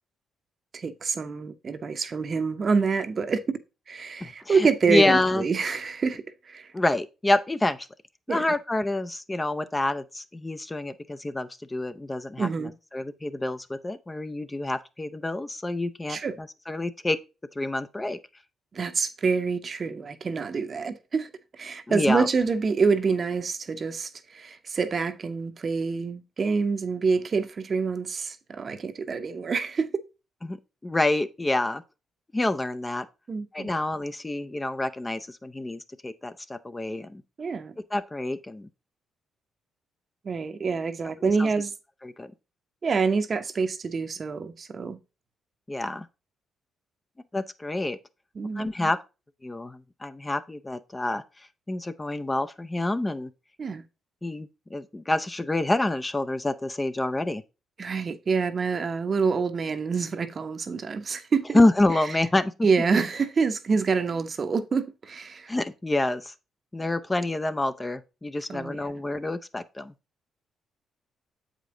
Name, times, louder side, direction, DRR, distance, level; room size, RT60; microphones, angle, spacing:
voice 1, 0.7-3.4 3.9-6.7 8.3-8.5 12.4-12.7 16.1-16.3 18.7-29.9 33.3-33.7 37.4-37.7 40.2-41.7 42.8-45.0 48.4-48.7 53.6-53.8 57.8-61.6 62.6-65.5 68.5-68.8, right 5 dB, 40° right, 0.8 m, -27 dB
voice 2, 4.2-5.4 6.7-7.9 8.3-12.5 12.9-17.2 17.6-18.2 21.9-22.3 30.4-30.6 30.8-31.8 32.3-33.1 33.5-37.2 37.9-38.7 41.2-41.5 42.0-42.3 45.7-46.1 47.3-48.0 48.6-49.0 49.4-51.2 51.7-53.3 54.2-57.4 61.5-62.5 65.5-66.3 66.7-69.9, left 2 dB, 15° left, 0.5 m, -27 dB
7.4 x 5.1 x 3.8 m
cardioid pair, 90°, 0 cm